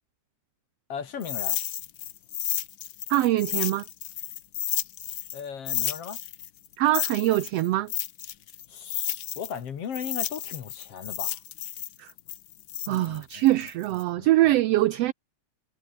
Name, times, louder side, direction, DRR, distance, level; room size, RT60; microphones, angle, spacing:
voice 1, 0.9-1.6 5.3-6.2 8.7-11.4 12.9-13.5 14.1-14.5, left 7 dB, 55° left, 2.7 m, -37 dB
sound 1, 1.2-5.4 5.7-9.6 9.9-14.0, left 11 dB, 75° left, 1.0 m, -32 dB
voice 2, 3.1-3.8 6.8-7.9 12.0-12.1 12.9-15.1, right 16 dB, 75° right, 1.5 m, -23 dB
omnidirectional pair, 3.4 m